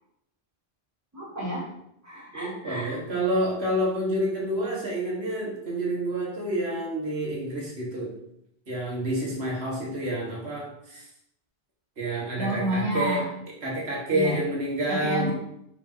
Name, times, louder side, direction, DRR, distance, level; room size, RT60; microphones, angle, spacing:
voice 1, 1.1-1.7 2.0-3.0 12.4-13.3 14.1-14.4 14.9-15.3, right 1 dB, 15° right, -5 dB, 2.4 m, -30 dB
voice 2, 2.3-8.1 8.7-11.1 12.0-13.2 13.6-15.3, right 1 dB, 80° right, -3 dB, 1.8 m, -28 dB
5.3 x 4.7 x 4.5 m, 0.76 s
omnidirectional pair, 1.0 m